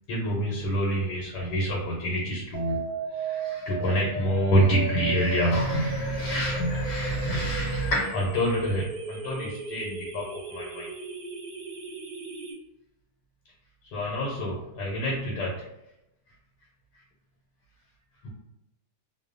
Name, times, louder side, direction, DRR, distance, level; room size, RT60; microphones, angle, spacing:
voice 1, 0.1-2.8 3.3-10.9 13.9-15.5 18.2-18.3, equal, 85° left, -3 dB, 1.2 m, -27 dB
sound 1, 2.5-12.5, right 5 dB, 80° right, 1.2 m, -36 dB
2.8 x 2.1 x 2.4 m, 0.89 s
omnidirectional pair, 1.8 m